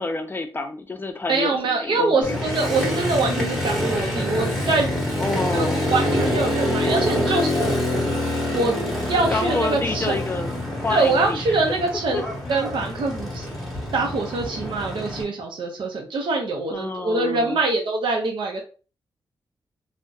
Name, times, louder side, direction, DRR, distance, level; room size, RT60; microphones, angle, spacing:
voice 1, 0.0-2.4 5.2-5.9 7.2-8.0 9.3-11.6 12.1-12.2 16.7-17.6, left 3 dB, 25° left, 6 dB, 0.4 m, -29 dB
voice 2, 1.3-5.0 5.5-7.5 8.5-8.7 9.1-10.2 10.9-12.2 12.5-13.5 13.9-18.6, right 3 dB, 75° right, 1 dB, 0.5 m, -24 dB
Motorcycle, 2.2-15.2, left 1 dB, ahead, 0.9 m, -26 dB
2.6 x 2.1 x 2.3 m, 0.36 s
wide cardioid pair, 100°, 8 cm